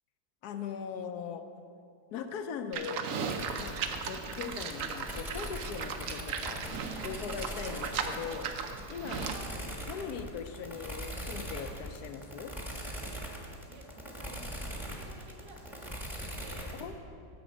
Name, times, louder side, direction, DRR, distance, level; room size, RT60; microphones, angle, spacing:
voice 1, 0.4-1.4 2.1-3.0 3.6-3.8 4.1-9.3 9.9-12.5 16.8-16.9, left 7 dB, 75° left, 8 dB, 1.1 m, -40 dB
Livestock farm animals working animals, 2.7-9.5, right 6 dB, 65° right, 0.9 m, -37 dB
sound 1, 3.3-16.8, equal, ahead, 1.0 m, -41 dB
voice 2, 9.3-9.6 13.7-16.8, right 2 dB, 90° right, 1 dB, 1.9 m, -52 dB
10.0 x 7.0 x 5.0 m, 2.5 s
omnidirectional pair, 1.8 m